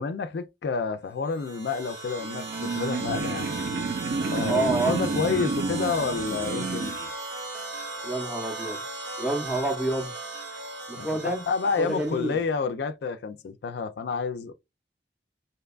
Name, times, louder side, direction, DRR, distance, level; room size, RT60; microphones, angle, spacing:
voice 1, 0.0-3.5 4.3-7.0 11.0-14.5, left 5 dB, 65° left, 0.3 m, -29 dB
sound 1, 1.2-12.5, right 3 dB, 75° right, 0.9 m, -37 dB
sound 2, 2.2-7.1, right 3 dB, 55° right, 0.4 m, -30 dB
voice 2, 4.5-5.0 8.0-8.8 9.2-10.1 10.9-11.4 11.8-12.4, right 2 dB, 5° right, 0.6 m, -28 dB
2.8 x 2.2 x 2.3 m
head